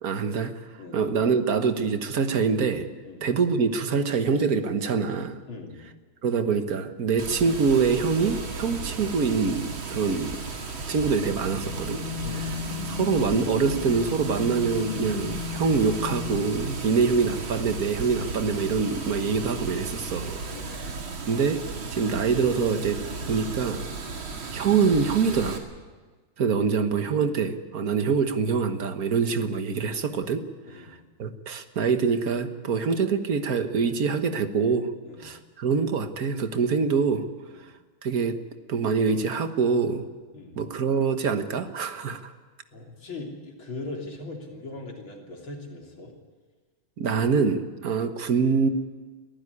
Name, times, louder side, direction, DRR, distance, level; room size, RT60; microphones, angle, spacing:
voice 1, 0.0-0.6 0.9-2.9 3.2-5.4 6.2-10.4 10.9-12.0 12.9-20.4 21.2-21.6 21.9-23.0 23.3-23.8 24.5-25.6 26.4-30.4 30.7-34.9 35.2-37.3 38.0-38.4 38.7-40.0 40.6-42.3 47.0-48.7, right 5 dB, 45° right, 8 dB, 1.5 m, -25 dB
voice 2, 5.5-5.8 12.2-12.6 16.8-17.0 20.5-20.8 26.4-26.7 30.7-30.9 35.0-35.3 37.5-37.6 40.3-40.6 42.7-46.1, left 2 dB, 65° left, 0 dB, 4.1 m, -40 dB
Water, 7.2-25.6, right 4 dB, 65° right, 3.0 m, -35 dB
sound 1, 11.2-17.5, left 7 dB, 30° left, 1.2 m, -36 dB
22.5 x 15.0 x 9.9 m, 1.4 s
omnidirectional pair, 2.4 m